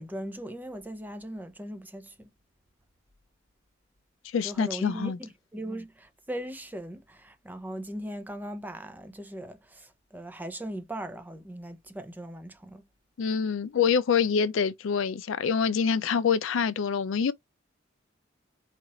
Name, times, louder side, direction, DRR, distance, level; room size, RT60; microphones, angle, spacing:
voice 1, 0.0-2.3 4.4-12.8, right 1 dB, 10° right, 0.5 m, -39 dB
voice 2, 4.3-5.2 13.2-17.3, left 6 dB, 75° left, 0.4 m, -26 dB
4.2 x 2.4 x 2.9 m
head